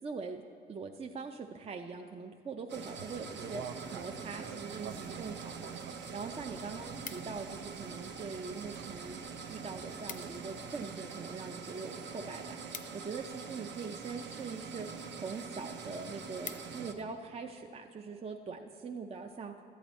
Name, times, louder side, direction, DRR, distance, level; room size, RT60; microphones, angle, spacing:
voice 1, 0.0-0.4 0.7-3.6 3.9-5.7 6.1-9.2 9.5-14.9 15.2-19.5, right 4 dB, 30° right, 4 dB, 0.5 m, -42 dB
sound 1, 2.7-16.9, right 5 dB, 65° right, 0.9 m, -44 dB
sound 2, 2.9-11.1, right 7 dB, 85° right, 0.6 m, -50 dB
sound 3, 7.1-7.6 8.3-8.9 9.2-9.3 9.5-9.6 9.9-10.5 10.8-13.7 14.4-14.8 15.3-15.4 15.7-15.8 16.1-17.1 17.5-17.8, left 6 dB, 40° left, 0.6 m, -49 dB
13.0 x 8.5 x 4.1 m, 2.3 s
cardioid pair, 90°, 20 cm